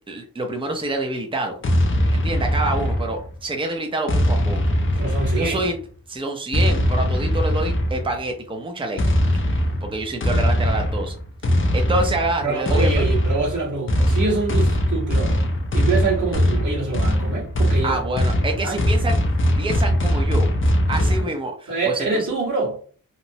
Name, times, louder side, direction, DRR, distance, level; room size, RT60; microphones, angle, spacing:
voice 1, 0.1-1.6 2.1-4.6 5.4-5.8 6.1-9.0 9.8-11.1 11.7-12.9 17.8-19.2 19.6-20.5 20.9-22.3, right 2 dB, 15° right, 0.5 m, -27 dB
sound 1, 1.6-3.4 4.1-5.8 6.5-8.2 9.0-21.2, equal, 35° left, 0.5 m, -21 dB
voice 2, 5.0-5.6 12.4-15.4 15.7-18.0 18.5-18.8 20.9-21.3 21.7-22.8, right 4 dB, 60° right, 1.5 m, -25 dB
2.9 x 2.0 x 2.6 m
wide cardioid pair, 115°, 34 cm